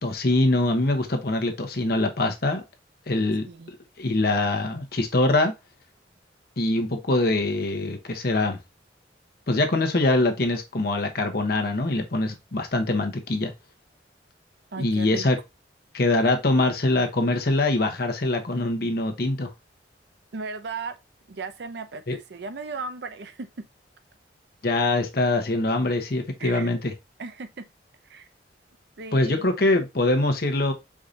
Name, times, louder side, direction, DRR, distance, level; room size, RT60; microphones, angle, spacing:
voice 1, 0.0-2.6 3.1-3.4 4.0-5.5 6.6-8.6 9.5-13.5 14.8-15.4 15.9-19.5 22.1-22.2 24.6-26.9 29.1-30.7, left 2 dB, 55° left, 0.9 m, -23 dB
voice 2, 14.7-15.3 20.3-21.0 21.3-23.5 26.4-26.7 27.2-27.6 28.1-28.3 29.0-29.5, right 4 dB, 65° right, 0.6 m, -36 dB
4.8 x 2.7 x 3.7 m
head